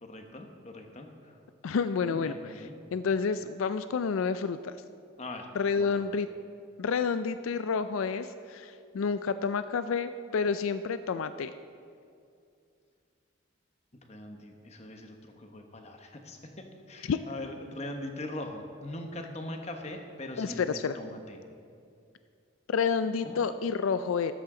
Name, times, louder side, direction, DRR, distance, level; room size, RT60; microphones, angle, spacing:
voice 1, 0.0-1.4 2.0-2.7 5.2-5.5 5.8-6.1 14.0-16.5 16.9-21.4 23.2-23.5, left 1 dB, 30° left, 4 dB, 1.1 m, -41 dB
voice 2, 1.6-4.8 5.6-6.3 6.8-11.5 17.1-17.2 20.4-21.0 22.7-24.3, left 5 dB, 85° left, 12 dB, 0.4 m, -29 dB
13.5 x 13.0 x 3.8 m, 2.4 s
head